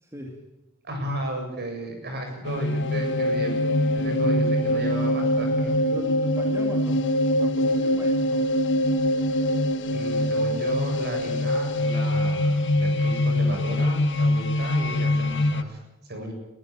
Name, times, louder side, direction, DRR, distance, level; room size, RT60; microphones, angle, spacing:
voice 1, 0.0-0.4 5.9-8.5, right 1 dB, 15° right, 1 dB, 2.5 m, -39 dB
voice 2, 0.8-3.6 3.9-6.0 9.9-16.3, right 1 dB, 50° right, 3 dB, 7.6 m, -34 dB
sound 1, 2.4-15.6, left 1 dB, 55° left, 1.3 m, -23 dB
22.5 x 15.0 x 8.8 m, 0.96 s
head